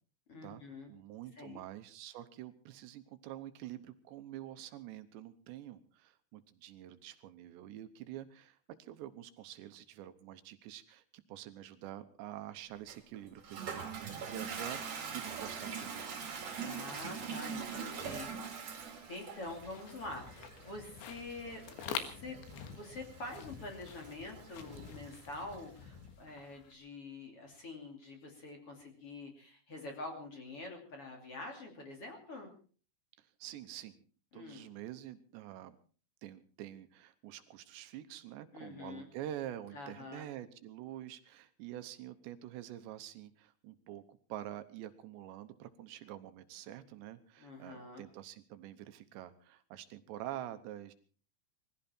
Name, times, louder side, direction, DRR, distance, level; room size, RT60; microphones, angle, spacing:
voice 1, 0.3-0.9 1.4-1.6 16.6-22.4 22.6-32.5 34.3-34.7 38.5-39.1 39.7-40.3 47.4-48.0, left 2 dB, 35° left, 2 dB, 3.1 m, -46 dB
voice 2, 0.9-16.2 33.2-34.0 34.3-35.8 36.2-50.9, right 12 dB, 80° right, 10 dB, 3.1 m, -47 dB
Toilet flush, 12.9-25.7, right 6 dB, 40° right, 3.0 m, -44 dB
sound 1, 19.5-26.7, left 8 dB, 80° left, 3.7 m, -47 dB
21.0 x 15.5 x 4.3 m, 0.41 s
omnidirectional pair, 5.2 m